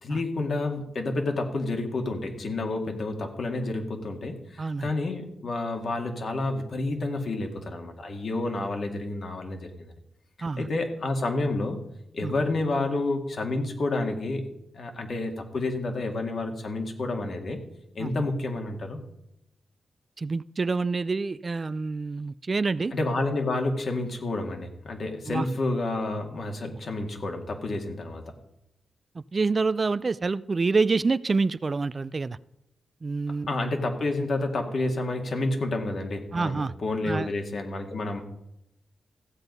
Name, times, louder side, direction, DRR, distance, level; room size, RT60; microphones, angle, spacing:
voice 1, 0.0-9.9 10.6-11.8 12.1-14.5 14.7-17.6 18.0-19.0 22.9-28.3 33.5-38.2, left 2 dB, 60° left, 2.1 m, -29 dB
voice 2, 4.6-4.9 10.4-10.7 12.2-12.3 18.0-18.1 20.2-22.9 25.3-25.5 29.2-32.4 33.0-33.5 36.3-36.7 37.1-37.3, right 4 dB, 40° right, 0.3 m, -27 dB
15.0 x 8.0 x 5.4 m
cardioid pair, 90°, 0 cm